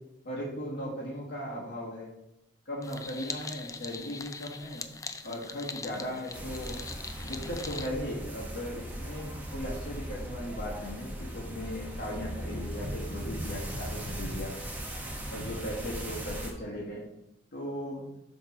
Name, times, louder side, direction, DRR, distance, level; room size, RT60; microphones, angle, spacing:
voice 1, 0.2-2.1 2.6-4.8 5.2-6.8 7.2-14.6 15.3-17.1 17.5-18.1, equal, 65° left, -5 dB, 1.6 m, -37 dB
sound 1, 2.8-7.9, left 4 dB, 20° left, 0.4 m, -42 dB
sound 2, 6.3-16.5, right 1 dB, 10° right, 1.2 m, -38 dB
7.5 x 3.6 x 6.0 m, 0.87 s
head